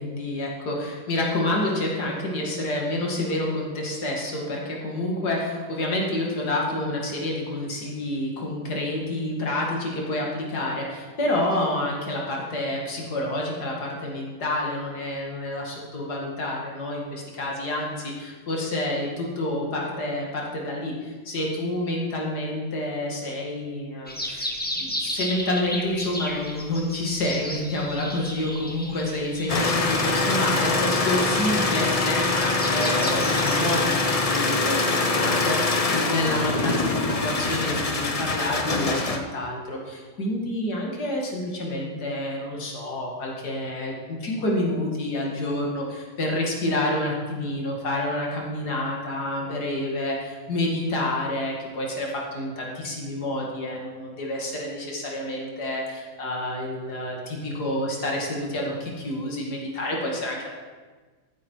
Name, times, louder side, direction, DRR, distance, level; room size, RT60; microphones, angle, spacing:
voice 1, 0.0-24.5 24.7-60.5, left 1 dB, 65° left, -2 dB, 2.6 m, -28 dB
sound 1, 24.1-34.2, left 1 dB, 5° left, 1.1 m, -35 dB
sound 2, 29.5-39.2, left 3 dB, 40° left, 0.5 m, -24 dB
14.0 x 8.3 x 4.7 m, 1.4 s
omnidirectional pair, 1.9 m